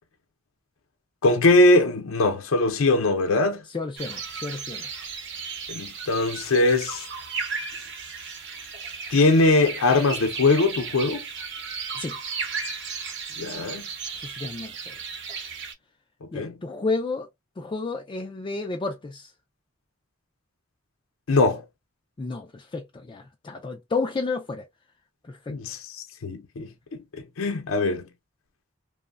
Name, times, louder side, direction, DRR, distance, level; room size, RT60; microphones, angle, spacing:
voice 1, 1.2-3.6 5.7-7.1 9.1-11.2 13.4-13.9 16.2-16.5 21.3-21.6 25.5-25.8 26.2-26.7 27.1-28.1, left 2 dB, 85° left, 0.5 m, -21 dB
voice 2, 3.7-4.9 11.9-12.2 14.2-14.9 16.3-17.3 17.6-19.3 22.2-24.6 25.2-25.6, left 3 dB, 25° left, 0.3 m, -31 dB
sound 1, 4.0-15.7, right 5 dB, 60° right, 0.8 m, -35 dB
3.0 x 2.1 x 2.3 m
head